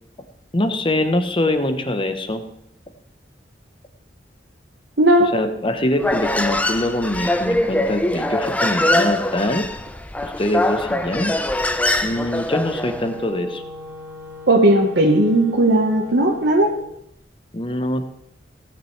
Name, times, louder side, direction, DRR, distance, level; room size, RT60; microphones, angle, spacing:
voice 1, 0.5-2.4 5.2-9.7 10.4-11.3 12.0-13.6 17.5-18.1, left 1 dB, 30° left, 8 dB, 1.0 m, -23 dB
voice 2, 5.0-5.3 14.5-16.7, right 1 dB, 85° right, 0 dB, 1.3 m, -16 dB
Human voice, 6.0-13.1, left 1 dB, 10° left, 0.5 m, -22 dB
Wind instrument woodwind instrument, 12.4-16.9, left 3 dB, 15° right, 1.5 m, -38 dB
17.0 x 9.3 x 3.3 m, 0.74 s
head